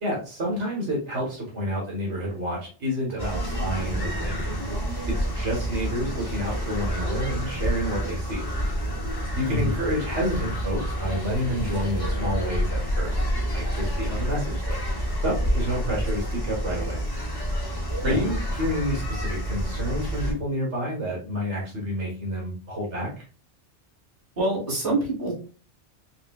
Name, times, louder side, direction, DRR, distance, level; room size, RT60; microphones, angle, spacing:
voice 1, 0.0-4.6 5.1-8.5 9.3-13.2 13.5-14.8 15.2-17.0 18.0-23.2, equal, 75° right, -3 dB, 1.7 m, -29 dB
sound 1, 3.2-20.3, equal, 20° left, 1.3 m, -28 dB
voice 2, 24.4-25.3, right 1 dB, 40° right, -5 dB, 2.2 m, -25 dB
6.3 x 2.6 x 2.3 m, 0.38 s
omnidirectional pair, 1.2 m